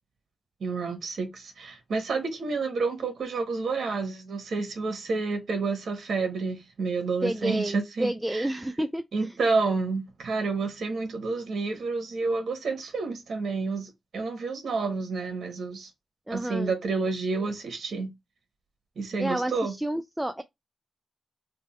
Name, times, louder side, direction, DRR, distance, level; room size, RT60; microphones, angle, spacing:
voice 1, 0.6-8.5 9.1-15.9 16.3-18.1 19.0-19.7, right 4 dB, 70° right, 1.1 m, -29 dB
voice 2, 7.2-9.0 16.3-16.7 19.2-20.4, right 1 dB, 10° right, 0.3 m, -30 dB
3.4 x 2.1 x 4.2 m
wide cardioid pair, 105°, 0 cm